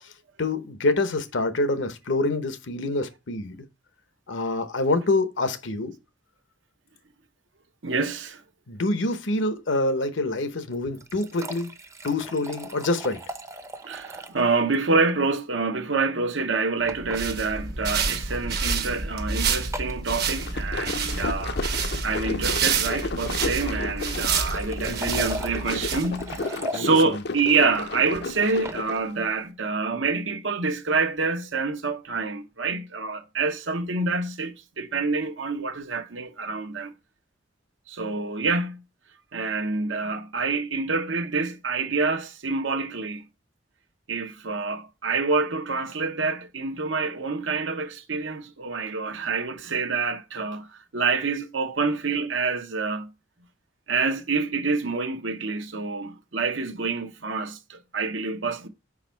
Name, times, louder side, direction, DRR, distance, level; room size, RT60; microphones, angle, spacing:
voice 1, 0.4-3.6 4.3-5.9 8.7-11.7 12.0-13.2 24.8-25.3 26.7-27.2, left 2 dB, 75° left, 0.9 m, -26 dB
voice 2, 7.8-8.4 13.8-21.6 22.0-36.9 37.9-38.8 39.3-43.2 44.1-50.7 50.9-53.1 53.9-58.7, right 4 dB, 80° right, 0.9 m, -27 dB
sound 1, 10.7-14.4 14.7-14.8 15.1-15.2 16.9-17.2 18.2-18.4 19.7-20.0 23.8-26.9 28.3-28.8, right 1 dB, 15° right, 0.6 m, -37 dB
sound 2, 16.9-26.4, right 5 dB, 55° right, 1.0 m, -29 dB
sound 3, 20.2-29.1, left 3 dB, 60° left, 0.6 m, -33 dB
5.1 x 4.9 x 4.5 m
head